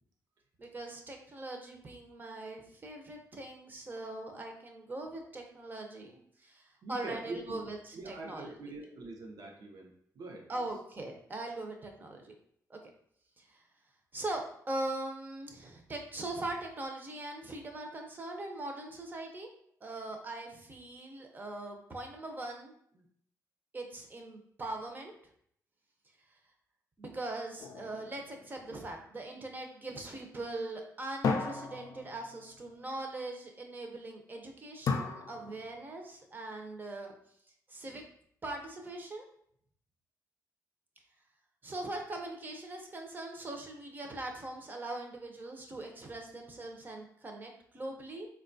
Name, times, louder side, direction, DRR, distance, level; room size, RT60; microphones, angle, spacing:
voice 1, 0.6-8.5 10.5-12.3 12.7-12.8 13.4-13.6 14.1-19.5 19.8-23.1 23.7-25.1 27.0-37.1 37.7-38.0 38.4-39.3 41.6-48.3, right 2 dB, 30° right, 2 dB, 0.6 m, -41 dB
voice 2, 6.8-7.6 7.9-10.6, right 2 dB, 75° right, 1 dB, 0.7 m, -44 dB
sound 1, 27.6-29.2 31.2-32.6 34.9-36.0, left 4 dB, 70° left, 0.4 m, -36 dB
4.1 x 2.3 x 2.6 m, 0.67 s
cardioid pair, 105°, 6 cm